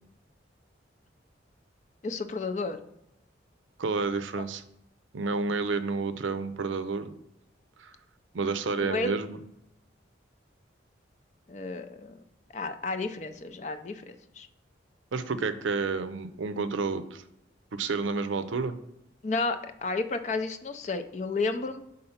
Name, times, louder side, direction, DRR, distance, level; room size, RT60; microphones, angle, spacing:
voice 1, 2.0-2.8 4.4-4.5 8.8-9.2 11.5-12.2 12.5-14.5 19.2-21.8, left 3 dB, 40° left, 9 dB, 0.4 m, -32 dB
voice 2, 3.8-4.6 5.1-7.1 7.8-7.9 8.3-9.4 15.1-17.2 17.7-18.7, right 4 dB, 85° right, 11 dB, 0.5 m, -30 dB
5.5 x 3.8 x 5.7 m, 0.81 s
head